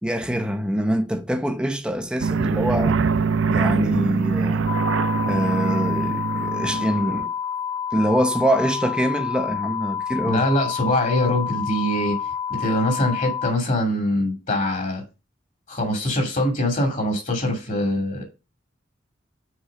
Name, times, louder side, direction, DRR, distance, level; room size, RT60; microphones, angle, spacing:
voice 1, 0.0-3.0 3.5-4.7 5.3-7.3 7.9-10.5, equal, 5° right, 0.8 m, -24 dB
sound 1, 2.2-7.3, right 5 dB, 85° right, 0.5 m, -23 dB
sound 2, 4.7-13.5, left 8 dB, 55° left, 1.7 m, -29 dB
voice 2, 10.2-12.2 12.5-15.0 15.7-18.2, left 1 dB, 40° left, 2.5 m, -23 dB
6.4 x 4.8 x 5.1 m
head